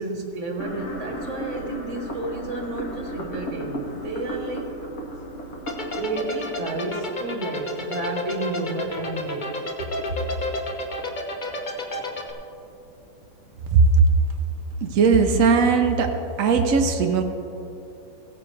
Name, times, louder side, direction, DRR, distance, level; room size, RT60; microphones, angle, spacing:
voice 1, 0.0-4.7 5.9-9.5, right 2 dB, 40° right, 2 dB, 1.5 m, -31 dB
sound 1, 0.6-7.6, equal, 45° left, 1.7 m, -35 dB
sound 2, 5.7-12.3, left 2 dB, 75° left, 0.4 m, -30 dB
voice 2, 14.8-16.1 16.4-17.2, right 5 dB, 80° right, 4 dB, 0.7 m, -18 dB
17.0 x 9.6 x 3.3 m, 2.7 s
omnidirectional pair, 2.4 m